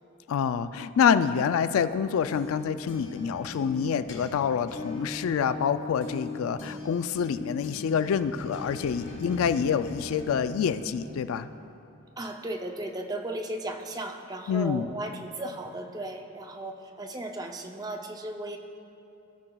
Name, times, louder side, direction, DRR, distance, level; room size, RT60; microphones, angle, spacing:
voice 1, 0.3-11.5 14.5-14.9, left 7 dB, 80° left, 12 dB, 0.3 m, -27 dB
sound 1, 1.9-11.6, left 3 dB, 55° left, 1.5 m, -40 dB
voice 2, 12.2-18.6, right 1 dB, 20° right, 5 dB, 0.5 m, -36 dB
17.5 x 8.8 x 2.3 m, 2.8 s
head